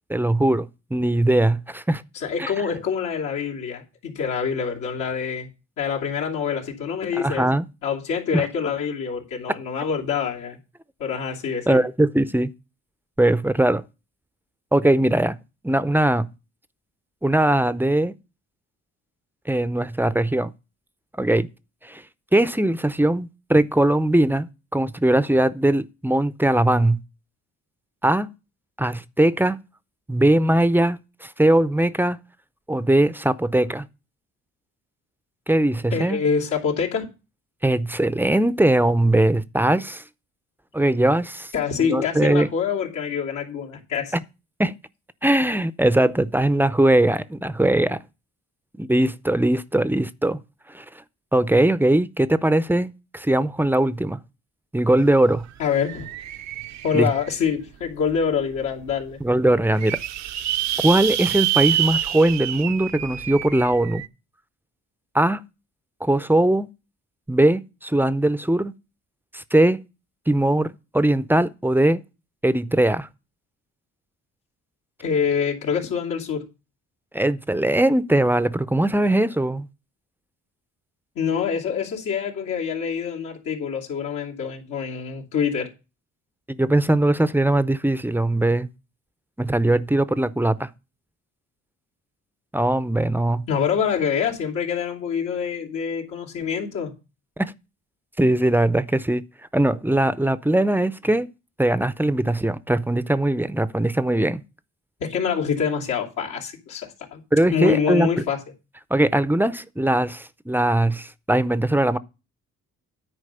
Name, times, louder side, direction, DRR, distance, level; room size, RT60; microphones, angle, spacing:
voice 1, 0.1-2.0 2.4-2.5 7.1-7.7 8.3-8.4 11.7-12.5 13.2-13.8 14.7-15.4 15.6-16.3 17.2-18.1 19.5-20.5 21.2-21.5 21.8-22.0 22.3-27.0 28.0-28.3 28.8-29.6 30.1-32.2 32.7-33.9 35.5-36.2 37.6-40.0 40.7-41.5 41.8-42.5 44.6-44.7 45.2-48.0 48.8-50.4 50.7-50.8 51.3-54.2 54.7-55.5 56.9-57.1 59.2-60.0 60.8-64.0 65.1-65.4 66.0-66.7 67.3-68.7 69.3-69.8 70.3-72.0 72.4-73.1 77.1-79.7 86.6-88.7 89.4-90.7 92.5-93.4 97.4-97.5 98.2-99.2 99.5-101.3 101.6-104.4 107.3-108.1 108.9-112.0, right 1 dB, 5° right, 0.5 m, -20 dB
voice 2, 2.1-5.5 5.8-7.5 7.8-10.6 11.0-11.8 35.9-37.1 41.5-44.1 55.6-56.1 56.8-59.2 75.0-76.5 81.1-85.7 93.5-96.9 105.0-107.2 107.5-108.4, left 7 dB, 85° left, 2.8 m, -25 dB
sound 1, 55.0-55.1 55.4-57.5 58.1-58.2 58.6-58.7 58.8-58.9 59.5-64.1, right 12 dB, 65° right, 0.6 m, -27 dB
9.9 x 4.6 x 6.7 m
cardioid pair, 90°, 30 cm